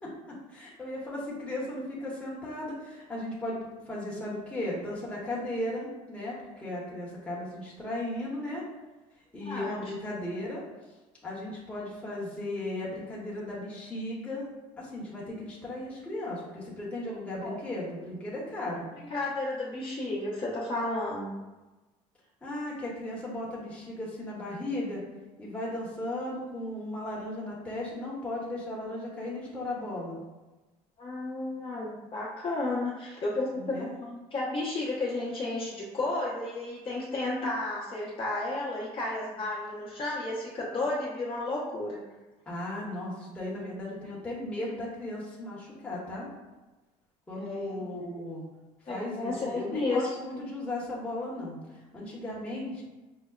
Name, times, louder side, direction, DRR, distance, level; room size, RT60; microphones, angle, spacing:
voice 1, 0.0-8.6 9.3-10.6 11.2-14.5 14.8-18.9 22.4-25.0 25.4-30.2 33.5-33.9 42.5-46.3 47.3-48.4 48.9-51.6 51.9-52.8, left 1 dB, 10° left, -6 dB, 1.0 m, -36 dB
voice 2, 9.4-9.8 17.4-17.6 19.1-21.3 31.0-42.0 47.3-47.9 48.9-50.0, left 2 dB, 40° left, -5 dB, 0.9 m, -32 dB
5.4 x 2.0 x 2.3 m, 1.1 s
cardioid pair, 125°, 14 cm